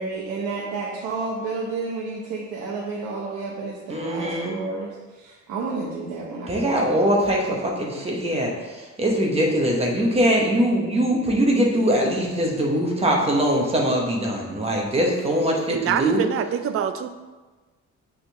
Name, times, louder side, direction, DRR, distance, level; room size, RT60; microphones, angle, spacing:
voice 1, 0.0-6.9, right 3 dB, 90° right, -4 dB, 1.0 m, -31 dB
voice 2, 3.9-4.6 6.5-16.2, equal, 20° right, -1 dB, 1.1 m, -22 dB
voice 3, 15.7-17.1, right 9 dB, 50° right, 9 dB, 0.5 m, -24 dB
8.8 x 3.8 x 3.4 m, 1.3 s
cardioid pair, 155°, 30 cm